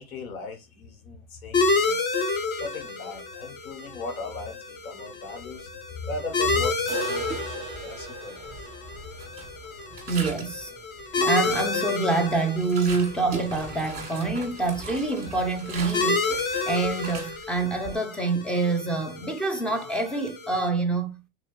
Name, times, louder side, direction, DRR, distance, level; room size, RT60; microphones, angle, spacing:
voice 1, 0.0-2.0 2.5-5.7 6.0-8.7, left 3 dB, 85° left, 1.4 m, -37 dB
sound 1, 1.5-20.7, left 3 dB, 25° left, 0.8 m, -30 dB
sound 2, 6.9-12.7 13.0-13.1 13.4-13.5 14.0-14.1 15.0-15.1, right 10 dB, 40° right, 0.7 m, -41 dB
sound 3, 7.2-8.0 8.4-10.6 11.0-11.9 12.3-17.9, right 4 dB, 20° right, 1.5 m, -39 dB
voice 2, 10.1-10.7 11.3-21.3, right 3 dB, ahead, 0.4 m, -26 dB
3.4 x 2.7 x 3.2 m
hypercardioid pair, 110°, 42 cm